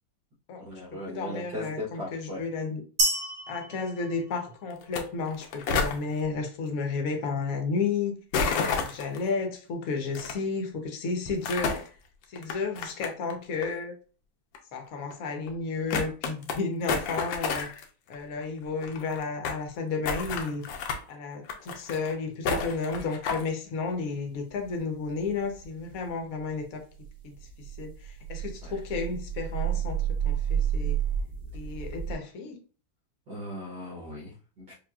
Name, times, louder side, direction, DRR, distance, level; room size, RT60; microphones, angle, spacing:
voice 1, 0.6-2.4 28.6-28.8 33.3-34.7, left 1 dB, 65° right, -5 dB, 1.7 m, -38 dB
voice 2, 1.1-2.8 3.5-8.2 8.7-11.8 12.3-13.9 14.7-17.7 18.1-20.6 21.1-26.8 27.2-30.0 30.2-31.0 31.5-32.6, left 4 dB, 55° left, 3 dB, 1.1 m, -32 dB
sound 1, 3.0-4.9, right 2 dB, 40° right, 0.9 m, -30 dB
sound 2, 4.8-5.0 5.3-6.0 8.3-9.2 10.1-10.3 11.2-11.9 12.4-13.3 13.6-13.7 14.5-14.6 15.1-15.2 15.5-15.6 15.9-16.6 16.9-17.8 18.1-18.2 18.4-18.5 18.7-19.6 20.0-21.0 21.4-22.1 22.4-23.5, left 4 dB, 85° left, 1.4 m, -30 dB
sound 3, 24.5-26.1 26.5-26.6 26.9-32.1, right 9 dB, 25° right, 1.6 m, -31 dB
5.1 x 2.7 x 2.3 m, 0.38 s
omnidirectional pair, 2.1 m